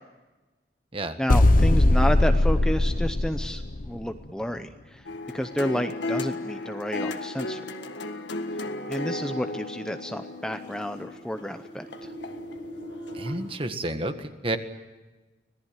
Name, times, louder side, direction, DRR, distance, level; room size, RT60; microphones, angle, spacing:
voice 1, 1.2-5.1 5.3-7.6 8.9-12.1, equal, 5° left, 7 dB, 0.7 m, -30 dB
sound 1, 1.3-4.0, left 1 dB, 50° left, 0.9 m, -20 dB
sound 2, 5.1-12.5 13.1-13.2, left 2 dB, 85° left, 1.7 m, -34 dB
sound 3, 10.0-13.3, equal, 75° right, 5.3 m, -43 dB
voice 2, 13.1-14.6, right 2 dB, 30° right, 8 dB, 1.6 m, -30 dB
25.5 x 18.5 x 9.0 m, 1.2 s
head